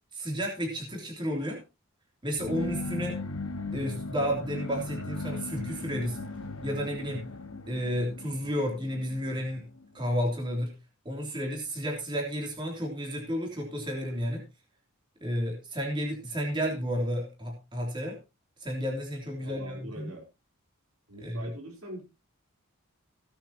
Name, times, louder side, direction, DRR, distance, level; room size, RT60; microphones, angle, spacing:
voice 1, 0.1-1.6 2.2-3.2 3.7-6.2 6.6-7.3 7.7-9.7 9.9-10.7 11.1-14.4 15.2-18.2 18.6-20.1 21.2-21.5, equal, 20° right, 0 dB, 3.4 m, -32 dB
sound 1, 2.4-10.1, left 2 dB, 80° left, 1.2 m, -38 dB
voice 2, 19.4-20.3 21.1-22.0, right 1 dB, 80° right, 1 dB, 4.3 m, -42 dB
17.0 x 9.0 x 3.0 m, 0.27 s
head